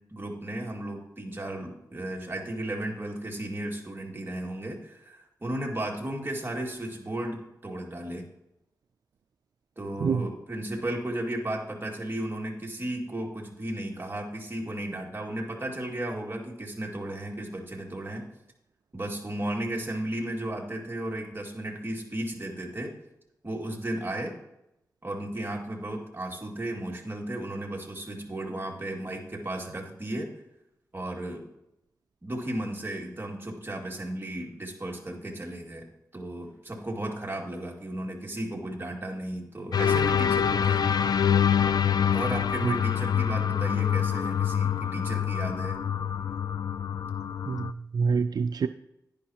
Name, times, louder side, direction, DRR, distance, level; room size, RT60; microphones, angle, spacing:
voice 1, 0.1-8.3 9.8-18.3 18.9-22.9 23.4-24.4 25.0-30.3 30.9-31.4 32.2-35.8 36.1-41.0 42.1-45.8, right 1 dB, 35° right, -1 dB, 2.2 m, -34 dB
sound 1, 39.7-47.7, left 8 dB, 80° left, 0.4 m, -26 dB
voice 2, 47.5-48.7, right 5 dB, 80° right, 10 dB, 0.3 m, -26 dB
10.5 x 10.5 x 2.9 m, 0.86 s
wide cardioid pair, 70°, 7 cm